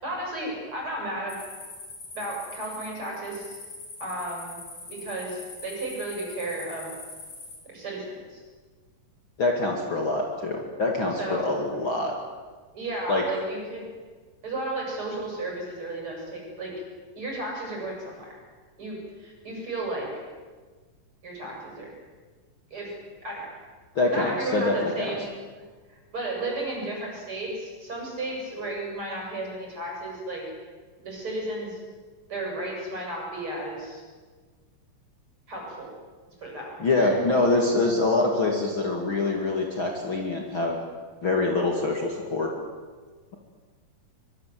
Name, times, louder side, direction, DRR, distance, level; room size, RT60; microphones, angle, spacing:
voice 1, 0.0-1.4 2.1-3.6 4.0-4.6 4.9-6.9 7.7-8.4 11.2-11.5 12.7-13.8 14.4-16.7 17.1-18.4 18.8-20.1 21.2-21.9 22.7-22.9 23.2-23.5 24.1-25.3 25.9-30.4 31.0-31.8 32.3-34.0 35.5-35.9 36.4-37.4 38.3-38.4, right 2 dB, 35° right, -1 dB, 8.5 m, -34 dB
sound 1, 1.3-7.6, left 3 dB, 55° left, 6.6 m, -43 dB
voice 2, 9.4-12.1 13.1-13.2 23.9-25.1 36.8-40.8 41.2-42.5, left 2 dB, 40° left, 0 dB, 2.9 m, -25 dB
25.0 x 22.5 x 7.7 m, 1.4 s
omnidirectional pair, 3.8 m